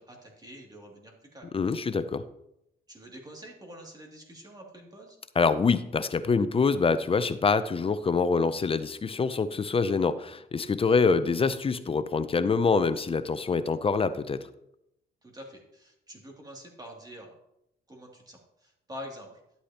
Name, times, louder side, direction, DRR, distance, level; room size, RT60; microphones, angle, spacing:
voice 1, 0.0-1.5 2.9-5.2 15.2-17.3 17.9-19.3, equal, 20° right, 0 dB, 2.6 m, -46 dB
voice 2, 1.5-2.2 5.4-14.4, left 4 dB, 30° left, 13 dB, 0.5 m, -25 dB
11.5 x 8.4 x 2.9 m, 0.83 s
cardioid pair, 90°, 20 cm